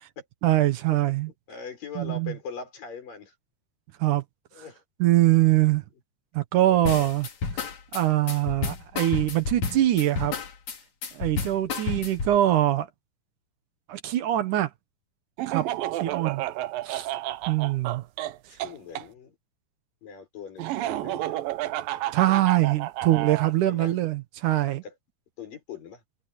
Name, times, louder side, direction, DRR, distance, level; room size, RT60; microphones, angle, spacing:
voice 1, 0.4-1.3 2.0-2.3 4.0-4.2 5.0-5.8 6.3-7.3 7.9-10.3 11.1-12.9 13.9-14.7 15.5-15.7 16.0-16.4 16.8-17.1 17.5-18.0 22.1-24.8, right 14 dB, 70° right, 2.4 m, -23 dB
voice 2, 1.5-3.3 4.5-4.8 6.6-7.1 11.6-12.0 18.5-19.4 20.0-22.0 22.3-22.8 23.6-23.9 24.8-24.9 25.4-26.0, left 5 dB, 75° left, 7.6 m, -42 dB
sound 1, 6.9-12.4, left 4 dB, 55° left, 3.8 m, -31 dB
Laughter, 15.4-19.1 20.6-23.5, right 14 dB, 90° right, 2.6 m, -31 dB
omnidirectional pair, 3.9 m